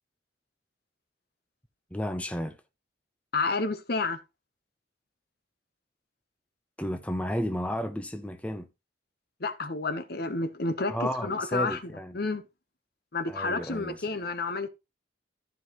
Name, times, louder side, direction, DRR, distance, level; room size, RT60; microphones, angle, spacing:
voice 1, 1.9-2.6 6.8-8.7 10.9-12.2 13.3-14.0, equal, 5° left, 0.6 m, -32 dB
voice 2, 3.3-4.2 9.4-12.4 13.1-14.7, left 3 dB, 55° left, 1.0 m, -30 dB
14.0 x 5.7 x 3.0 m
head